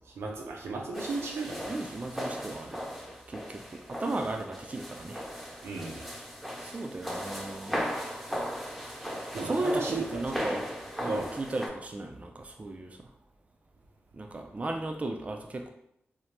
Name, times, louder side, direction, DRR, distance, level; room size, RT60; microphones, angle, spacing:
voice 1, 0.2-1.7 5.6-6.0 9.3-10.2 11.0-11.3, right 3 dB, 85° right, 0 dB, 0.6 m, -35 dB
sound 1, 0.9-11.7, equal, ahead, 0.7 m, -37 dB
voice 2, 1.7-2.9 3.3-5.2 6.6-7.8 9.4-10.7 11.0-13.0 14.1-15.7, right 2 dB, 30° right, 3 dB, 0.3 m, -35 dB
2.8 x 2.0 x 3.1 m, 0.77 s
cardioid pair, 50°, 4 cm